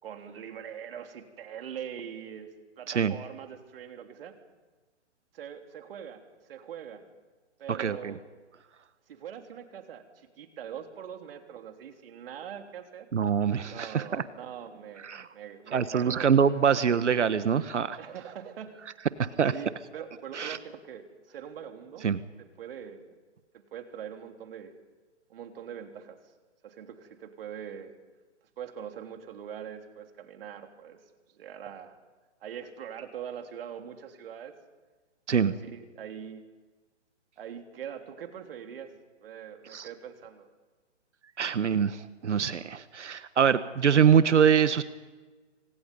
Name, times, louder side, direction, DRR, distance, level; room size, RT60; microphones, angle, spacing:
voice 1, 0.0-2.5 2.8-4.4 5.3-6.2 6.5-7.0 7.6-8.2 9.1-13.1 13.7-16.3 18.0-19.0 19.5-22.1 22.4-23.1 23.5-24.8 25.3-26.2 26.6-27.9 28.6-31.0 31.4-31.9 32.4-34.5 35.4-36.4 37.4-40.5, right 8 dB, 50° right, 5 dB, 3.4 m, -42 dB
voice 2, 7.7-8.1 13.1-14.2 15.0-15.3 15.7-18.0 19.2-19.5 20.3-20.6 22.0-22.2 35.3-35.5 39.7-39.9 41.4-44.8, right 7 dB, 75° right, 13 dB, 1.4 m, -24 dB
28.0 x 26.0 x 5.5 m, 1.3 s
hypercardioid pair, 140°, 36 cm